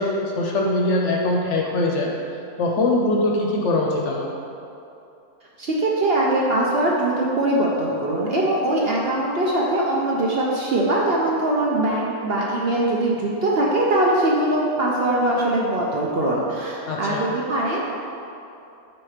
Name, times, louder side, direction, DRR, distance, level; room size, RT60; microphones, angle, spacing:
voice 1, 0.0-2.1 2.6-4.3 16.9-17.3, left 2 dB, 65° left, -1 dB, 0.9 m, -22 dB
voice 2, 5.6-17.8, right 1 dB, 55° right, -4 dB, 0.7 m, -22 dB
4.5 x 4.4 x 4.9 m, 2.8 s
omnidirectional pair, 1.5 m